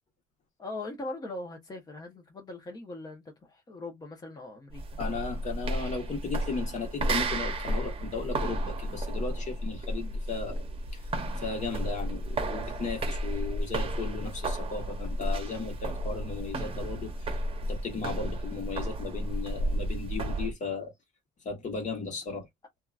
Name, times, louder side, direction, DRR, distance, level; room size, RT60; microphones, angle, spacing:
voice 1, 0.6-4.8, left 2 dB, 25° left, 0.8 m, -40 dB
sound 1, 4.7-20.5, right 1 dB, 35° right, 0.8 m, -32 dB
voice 2, 5.0-10.6 10.9-11.0 11.4-20.9 21.4-22.5, left 4 dB, 45° left, 1.3 m, -36 dB
2.8 x 2.3 x 2.4 m
cardioid pair, 110°, 17 cm